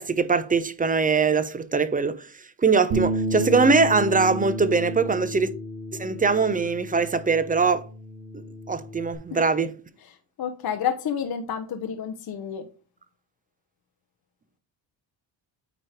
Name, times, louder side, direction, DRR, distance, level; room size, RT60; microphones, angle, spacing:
voice 1, 0.0-2.2 2.6-5.5 6.0-7.9 8.3-9.7, right 4 dB, 15° right, 0.7 m, -22 dB
Bass guitar, 2.9-9.2, right 1 dB, 75° right, 2.4 m, -32 dB
voice 2, 10.0-12.7, left 8 dB, 50° left, 0.9 m, -30 dB
9.0 x 3.1 x 4.9 m
cardioid pair, 80°, 48 cm